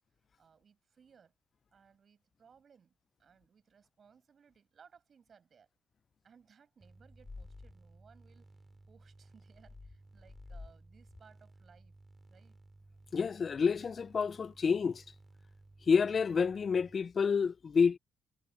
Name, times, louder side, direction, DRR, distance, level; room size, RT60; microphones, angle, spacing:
voice 1, 0.4-1.3 1.7-2.9 3.2-5.7 6.2-8.5 8.9-12.0 12.3-12.6, right 6 dB, 50° right, 7.3 m, -63 dB
sound 1, 6.8-16.9, right 2 dB, 20° right, 2.4 m, -59 dB
sound 2, 7.1-7.7 9.6-10.7 11.1-11.2, left 3 dB, 25° left, 4.8 m, -49 dB
voice 2, 13.1-15.0 15.9-18.0, left 6 dB, 45° left, 0.3 m, -29 dB
cardioid pair, 90°, 0 cm